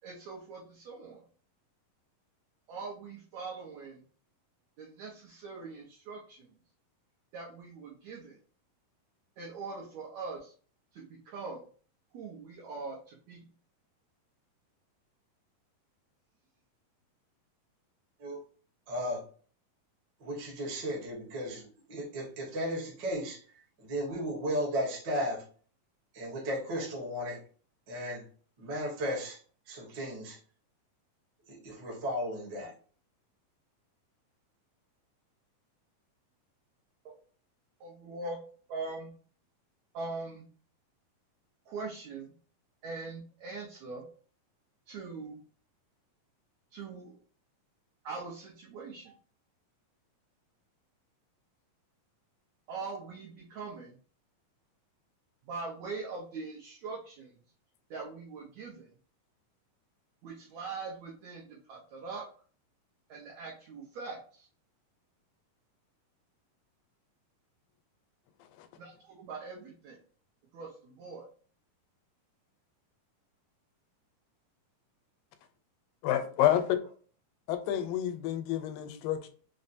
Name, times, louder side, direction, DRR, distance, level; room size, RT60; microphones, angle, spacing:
voice 1, 0.0-1.2 2.7-4.0 4.8-6.5 7.3-8.4 9.4-10.5 10.9-11.6 12.1-13.4 37.0-37.1 37.8-38.4 38.7-39.1 39.9-40.5 41.7-42.3 42.8-44.0 44.9-45.4 46.7-47.2 48.0-49.1 52.7-54.0 55.5-57.3 57.9-58.9 60.2-62.2 63.1-64.5 68.8-70.0 70.5-71.3 76.5-76.6, right 4 dB, 75° right, 1.6 m, -42 dB
voice 2, 18.9-19.2 20.2-23.4 23.8-25.4 26.1-27.4 27.9-28.2 28.6-29.4 29.7-30.4 31.5-32.7, equal, 55° right, 1.2 m, -35 dB
voice 3, 76.0-76.8 77.5-79.3, left 11 dB, 90° left, 2.3 m, -28 dB
5.3 x 2.1 x 2.5 m
omnidirectional pair, 3.9 m